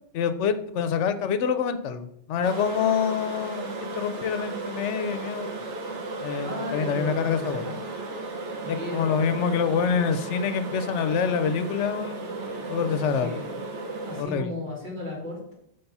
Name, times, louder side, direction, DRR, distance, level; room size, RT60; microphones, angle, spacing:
voice 1, 0.1-5.5 6.2-7.6 8.9-12.3 12.7-13.3 14.2-14.5, left 7 dB, 85° left, 10 dB, 0.9 m, -26 dB
sound 1, 2.4-14.2, right 2 dB, 75° right, 1.2 m, -35 dB
voice 2, 6.4-7.7 8.6-9.8 12.4-13.5 14.1-15.5, left 2 dB, 45° right, -4 dB, 2.2 m, -36 dB
5.8 x 3.4 x 5.4 m, 0.72 s
omnidirectional pair, 1.2 m